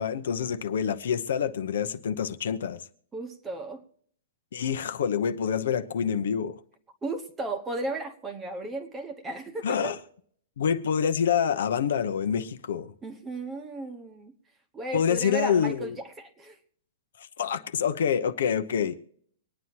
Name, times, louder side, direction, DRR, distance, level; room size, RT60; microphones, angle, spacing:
voice 1, 0.0-2.8 4.5-6.6 9.6-10.0 10.6-12.9 14.9-16.0 17.2-19.0, left 7 dB, 65° left, 0.9 m, -27 dB
voice 2, 3.1-3.8 7.0-9.9 13.0-14.3 14.7-16.6, right 2 dB, 10° right, 1.1 m, -35 dB
25.0 x 9.5 x 2.9 m
hypercardioid pair, 175°, 0 cm